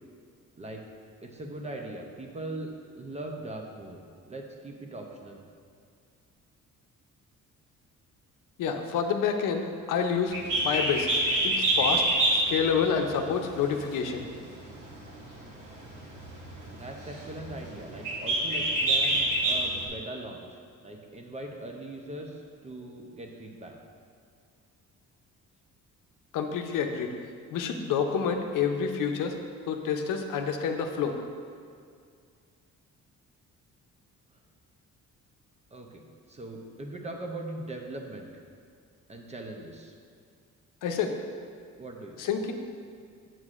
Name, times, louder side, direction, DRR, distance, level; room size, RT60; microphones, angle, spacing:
voice 1, 1.2-5.4 16.7-23.8 35.7-36.0 36.3-38.4 39.1-39.9 41.8-42.2, right 2 dB, 20° right, 2 dB, 0.5 m, -40 dB
voice 2, 8.6-11.1 11.4-14.2 26.3-27.1 27.5-29.4 29.7-31.2 40.8-41.2 42.2-42.5, left 6 dB, 80° left, 5 dB, 0.7 m, -28 dB
Bird, 10.3-19.9, right 1 dB, 70° right, 1.4 m, -28 dB
8.0 x 7.5 x 2.4 m, 2.2 s
cardioid pair, 150°, 32 cm